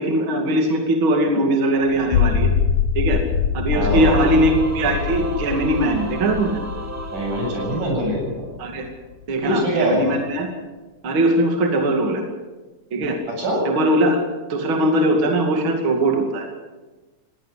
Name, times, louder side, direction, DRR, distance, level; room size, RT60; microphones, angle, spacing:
voice 1, 0.0-2.5 2.9-3.2 3.5-6.6 8.6-8.9 9.3-10.5 11.0-12.2 12.9-13.2 13.6-14.2 14.5-16.6, right 1 dB, 40° right, 3 dB, 3.0 m, -20 dB
sound 1, 1.9-8.4, left 8 dB, 80° left, 2.4 m, -23 dB
voice 2, 3.7-4.2 7.1-8.5 9.4-10.1 13.3-13.6, right 1 dB, 80° right, 0 dB, 9.2 m, -23 dB
Singing / Musical instrument, 3.8-8.6, right 3 dB, 10° right, 0.8 m, -34 dB
21.0 x 17.5 x 8.5 m, 1.2 s
omnidirectional pair, 3.6 m